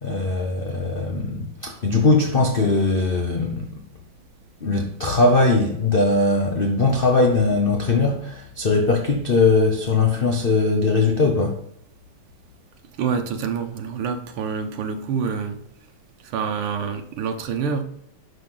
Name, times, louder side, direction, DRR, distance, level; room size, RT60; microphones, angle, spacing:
voice 1, 0.0-3.8 4.6-11.6, left 3 dB, 50° left, 0.6 m, -20 dB
voice 2, 13.0-15.6 16.2-17.8, right 6 dB, 90° right, 1.8 m, -27 dB
10.5 x 5.7 x 3.8 m
omnidirectional pair, 2.3 m